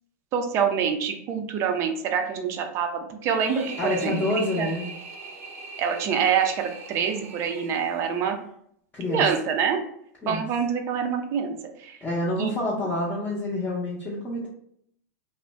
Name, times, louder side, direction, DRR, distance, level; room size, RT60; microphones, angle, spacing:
voice 1, 0.3-4.7 5.8-8.4 9.1-9.8 10.3-12.0 12.4-12.8, right 7 dB, 35° right, 5 dB, 0.4 m, -26 dB
sound 1, 3.3-8.4, right 4 dB, 70° right, 0.6 m, -41 dB
voice 2, 3.8-4.9 8.9-9.2 10.2-10.4 12.0-14.5, left 1 dB, 15° left, -7 dB, 0.6 m, -27 dB
2.5 x 2.0 x 3.3 m, 0.68 s
supercardioid pair, 140°, 9 cm